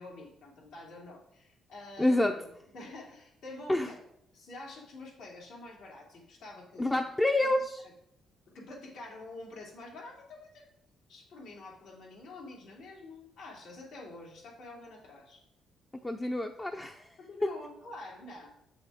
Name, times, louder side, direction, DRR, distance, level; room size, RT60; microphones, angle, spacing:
voice 1, 0.0-2.5 2.7-4.0 4.3-7.0 7.4-7.5 8.5-10.6 11.1-15.4 17.2-18.5, left 2 dB, 80° left, -3 dB, 2.8 m, -47 dB
voice 2, 2.0-2.3 3.7-3.9 6.8-7.8 16.0-17.1, left 1 dB, 15° left, 4 dB, 0.6 m, -28 dB
7.4 x 6.4 x 3.5 m, 0.75 s
cardioid pair, 85°, 0 cm